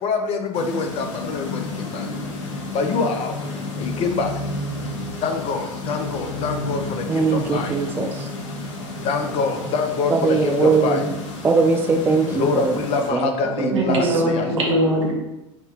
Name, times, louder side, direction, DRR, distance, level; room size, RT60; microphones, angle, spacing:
voice 1, 0.0-2.1 2.4-3.5 3.8-4.3 5.2-7.7 9.0-11.0 12.3-14.7, left 4 dB, 40° left, 5 dB, 0.6 m, -25 dB
sound 1, 0.5-13.1, left 2 dB, 70° left, 0.9 m, -31 dB
voice 2, 7.1-8.1 10.1-11.1 11.4-12.7 13.1-13.3 13.6-14.1, right 4 dB, 15° right, 3 dB, 0.3 m, -20 dB
voice 3, 13.7-15.1, right 1 dB, 80° right, -1 dB, 1.1 m, -21 dB
3.4 x 2.2 x 4.4 m, 0.97 s
hypercardioid pair, 90°, 16 cm